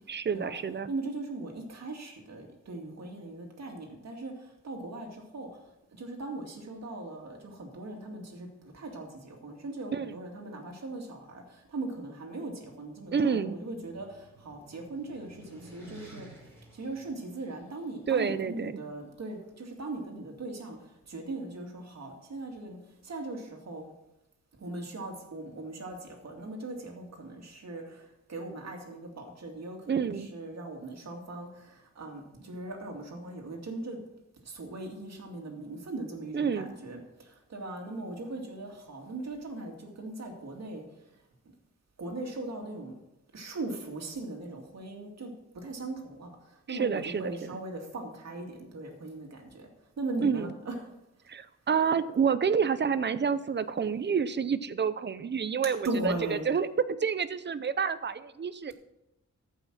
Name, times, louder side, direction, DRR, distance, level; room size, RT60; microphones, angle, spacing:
voice 1, 0.1-0.9 9.9-10.2 13.1-13.6 18.1-18.7 29.9-30.3 36.3-36.7 46.7-47.6 50.2-50.5 51.3-56.7 57.0-58.7, right 6 dB, 35° right, 14 dB, 0.6 m, -29 dB
voice 2, 0.9-5.5 6.0-8.5 8.7-16.3 16.7-20.8 21.1-22.8 23.0-23.8 24.6-28.0 28.3-34.0 34.4-37.0 37.5-40.8 42.0-42.9 43.3-45.3 45.6-46.3 46.7-49.7 50.0-50.8 55.8-56.5, right 2 dB, 60° right, 1 dB, 2.4 m, -39 dB
sound 1, 13.0-17.9, right 1 dB, 10° left, 4.4 m, -53 dB
13.5 x 5.7 x 6.1 m, 0.90 s
wide cardioid pair, 130°, 30 cm